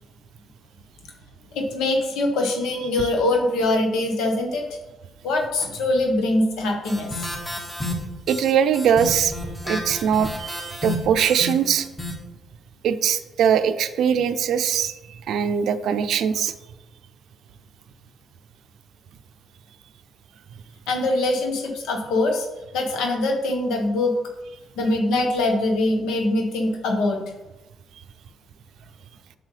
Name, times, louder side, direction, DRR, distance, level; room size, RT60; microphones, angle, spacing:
voice 1, 1.5-4.8 5.2-7.2 20.9-22.5 22.7-24.2 24.8-27.2, left 2 dB, 90° left, 2 dB, 1.1 m, -23 dB
sound 1, 6.8-12.1, left 1 dB, 15° left, 1.9 m, -31 dB
voice 2, 8.3-9.3 9.6-11.9 12.8-14.9 15.3-16.5, right 8 dB, 75° right, 10 dB, 0.5 m, -21 dB
7.5 x 7.0 x 3.3 m, 1.0 s
cardioid pair, 90°, 0 cm